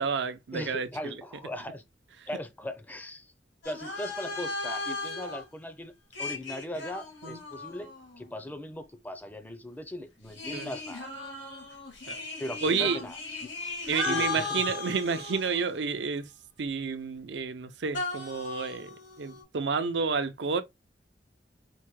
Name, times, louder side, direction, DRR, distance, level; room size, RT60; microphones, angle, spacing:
voice 1, 0.0-1.1 7.2-7.4 10.5-10.7 12.1-12.2 12.6-13.0 13.9-16.2 16.6-20.6, right 5 dB, 75° right, 0.5 m, -30 dB
voice 2, 0.5-1.8 2.3-3.3 3.6-11.1 12.4-13.5 14.1-14.6, left 1 dB, 10° left, 0.5 m, -39 dB
sound 1, 3.6-5.4 6.1-8.3 10.3-15.9 17.9-19.4, left 3 dB, 80° left, 1.7 m, -36 dB
4.5 x 2.2 x 3.0 m
head